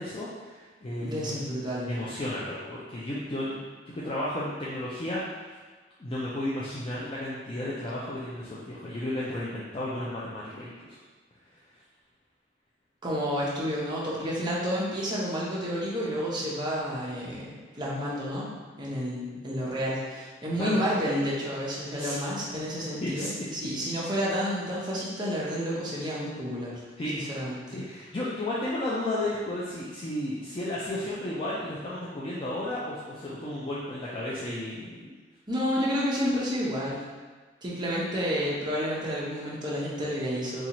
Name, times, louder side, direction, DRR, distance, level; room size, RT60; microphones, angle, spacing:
voice 1, 0.0-1.4 1.9-3.6 3.9-5.6 6.0-11.0 20.6-20.8 22.0-22.2 23.0-23.3 27.0-27.2 27.7-35.1, left 1 dB, 30° left, -8 dB, 0.4 m, -33 dB
voice 2, 1.0-2.0 13.0-17.5 17.7-26.8 27.1-27.8 35.5-37.0 37.6-40.7, equal, 25° right, -6 dB, 0.8 m, -30 dB
4.0 x 2.4 x 2.9 m, 1.4 s
head